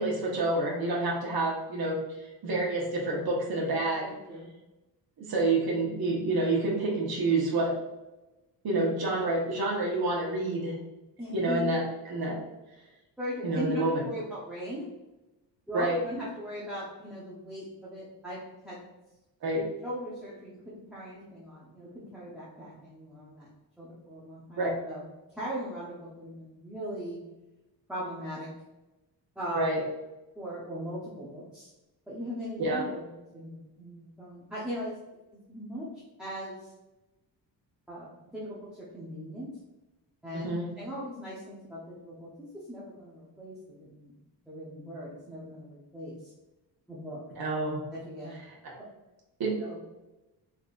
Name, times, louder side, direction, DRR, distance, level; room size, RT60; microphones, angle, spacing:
voice 1, 0.0-4.1 5.2-7.7 8.6-10.8 11.3-12.4 13.4-14.0 15.7-16.0 19.4-19.7 24.6-24.7 29.5-29.8 32.6-32.9 40.3-40.7 47.4-47.8 48.6-48.7 49.4-49.6, right 2 dB, 55° right, -3 dB, 1.2 m, -28 dB
voice 2, 4.0-4.5 8.7-8.8 11.2-11.6 13.2-14.9 15.7-18.8 19.8-23.5 23.8-25.0 25.3-27.2 27.9-28.5 29.4-29.7 30.3-31.7 32.1-33.1 33.3-34.9 35.3-35.9 36.2-36.7 37.9-39.5 40.2-44.1 44.5-46.3 46.9-47.2 48.1-48.3 48.8-48.9 49.6-49.8, equal, ahead, -9 dB, 0.9 m, -39 dB
3.8 x 3.8 x 2.5 m, 1.0 s
cardioid pair, 130°, 43 cm